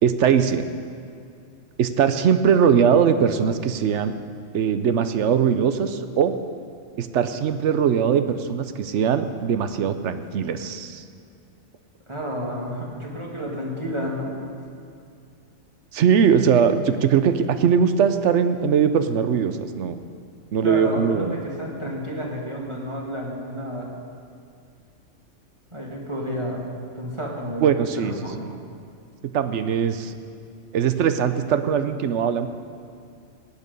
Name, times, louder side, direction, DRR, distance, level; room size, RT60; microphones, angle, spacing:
voice 1, 0.0-0.6 1.8-4.1 4.5-6.3 7.0-11.0 15.9-20.0 20.5-21.4 27.6-28.6 29.3-30.1 30.7-32.5, right 7 dB, 70° right, 10 dB, 1.0 m, -21 dB
voice 2, 12.1-14.3 20.6-23.9 25.7-26.6 26.9-27.7 27.9-28.3, equal, 25° right, -3 dB, 2.1 m, -30 dB
17.5 x 8.3 x 5.3 m, 2.4 s
omnidirectional pair, 1.3 m